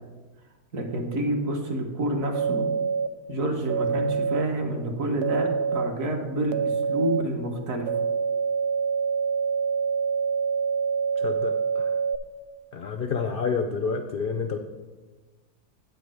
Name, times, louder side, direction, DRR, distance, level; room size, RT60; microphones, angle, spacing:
voice 1, 0.7-2.6 3.3-7.9, right 1 dB, 60° right, 2 dB, 1.5 m, -28 dB
sound 1, 2.3-3.1 3.7-4.4 5.2-5.9 6.5-7.2 7.9-12.2, right 6 dB, 85° right, 1.1 m, -26 dB
voice 2, 11.2-11.9 12.7-14.6, left 5 dB, 80° left, 4 dB, 0.4 m, -29 dB
9.0 x 5.2 x 6.2 m, 1.3 s
omnidirectional pair, 1.7 m